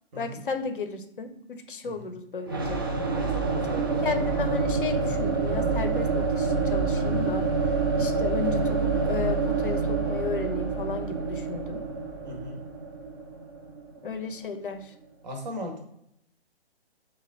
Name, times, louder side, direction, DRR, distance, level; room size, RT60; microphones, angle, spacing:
voice 1, 0.2-2.8 3.8-7.5 8.0-11.9 14.0-14.9, left 4 dB, 55° left, 8 dB, 0.6 m, -34 dB
sound 1, 2.5-14.3, right 4 dB, 20° right, 0.4 m, -27 dB
voice 2, 3.1-4.0 12.2-12.6 15.2-15.8, equal, 45° right, 2 dB, 1.2 m, -37 dB
5.0 x 2.2 x 3.6 m, 0.75 s
figure-of-eight pair, 135°, 32 cm